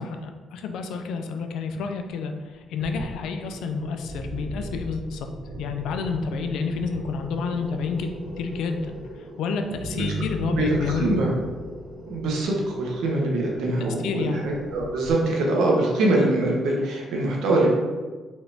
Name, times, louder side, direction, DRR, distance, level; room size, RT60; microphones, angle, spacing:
voice 1, 0.0-5.3 5.6-8.1 8.4-11.1 14.0-14.4, left 5 dB, 85° left, 6 dB, 0.4 m, -29 dB
sound 1, 2.8-15.1, equal, 50° right, 1.1 m, -37 dB
voice 2, 10.4-11.3 12.1-17.7, right 2 dB, 85° right, -1 dB, 1.0 m, -23 dB
4.8 x 3.3 x 2.7 m, 1.3 s
cardioid pair, 90°, 0 cm